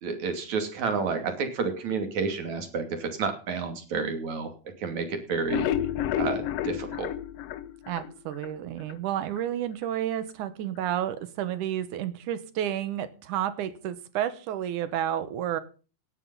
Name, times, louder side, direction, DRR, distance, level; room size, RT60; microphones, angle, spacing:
voice 1, 0.0-4.5 4.8-5.7 6.2-7.1, right 5 dB, 70° right, 6 dB, 3.9 m, -30 dB
sound 1, 5.3-8.5 8.9-9.0 9.4-9.5 9.8-9.9, left 11 dB, 70° left, 1.6 m, -30 dB
voice 2, 7.9-15.6, right 11 dB, 85° right, 14 dB, 2.7 m, -31 dB
18.0 x 9.2 x 5.5 m, 0.37 s
omnidirectional pair, 3.4 m